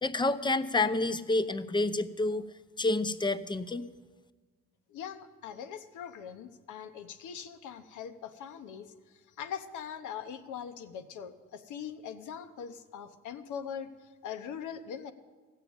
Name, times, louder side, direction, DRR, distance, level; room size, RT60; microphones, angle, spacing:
voice 1, 0.0-2.4 2.8-3.8, left 2 dB, 15° left, 13 dB, 0.6 m, -29 dB
voice 2, 4.9-8.9 9.4-13.9 14.2-15.1, left 8 dB, 80° left, 9 dB, 0.9 m, -41 dB
15.0 x 6.7 x 8.7 m, 1.4 s
cardioid pair, 90°, 30 cm